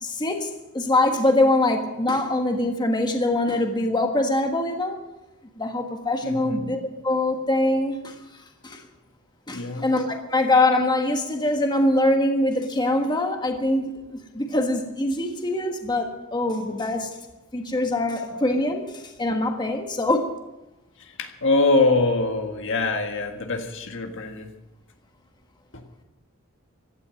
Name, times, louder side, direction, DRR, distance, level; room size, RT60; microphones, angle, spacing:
voice 1, 0.0-5.0 5.6-8.2 8.6-8.8 9.5-13.8 14.1-17.2 17.5-20.3, left 2 dB, 20° left, 4 dB, 1.4 m, -23 dB
voice 2, 6.2-6.7 9.5-9.9 21.0-24.5 25.7-25.8, left 3 dB, 60° left, 5 dB, 1.7 m, -24 dB
16.5 x 12.5 x 6.4 m, 0.98 s
head